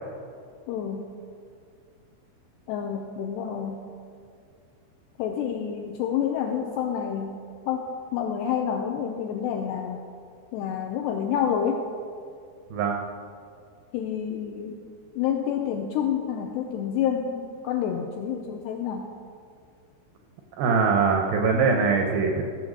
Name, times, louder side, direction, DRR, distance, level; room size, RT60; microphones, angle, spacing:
voice 1, 0.7-1.1 2.7-3.8 5.2-7.4 7.7-10.0 10.5-11.8 13.9-14.8 15.2-19.1, left 8 dB, 85° left, 3 dB, 2.4 m, -28 dB
voice 2, 20.6-22.4, right 5 dB, 85° right, 3 dB, 2.1 m, -22 dB
15.0 x 7.4 x 6.2 m, 2.3 s
omnidirectional pair, 5.5 m